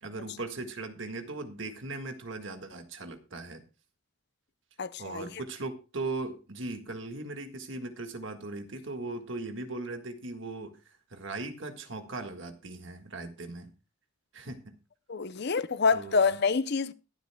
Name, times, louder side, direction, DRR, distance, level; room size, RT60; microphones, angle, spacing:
voice 1, 0.0-3.6 5.0-10.8 11.1-13.7 14.3-14.7 15.9-16.2, right 2 dB, 60° right, 1.6 m, -38 dB
voice 2, 4.8-5.3 15.1-16.9, left 5 dB, 50° left, 0.6 m, -27 dB
22.0 x 8.1 x 2.2 m
head